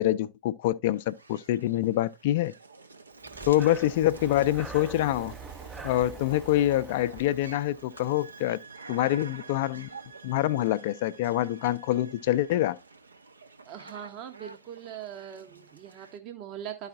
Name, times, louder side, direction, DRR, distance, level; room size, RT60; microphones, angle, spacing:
voice 1, 0.0-2.5 3.5-5.3 5.8-8.6 8.9-9.9 10.2-12.8, left 14 dB, 50° left, 0.4 m, -26 dB
sound 1, 0.9-16.2, right 3 dB, 80° right, 0.7 m, -49 dB
Breathing, 3.2-8.2, right 5 dB, 15° right, 0.4 m, -44 dB
sound 2, 7.8-12.8, right 5 dB, 60° right, 2.4 m, -52 dB
voice 2, 13.6-16.9, right 9 dB, 40° right, 0.8 m, -41 dB
12.0 x 4.9 x 2.5 m
figure-of-eight pair, 90°, 0 cm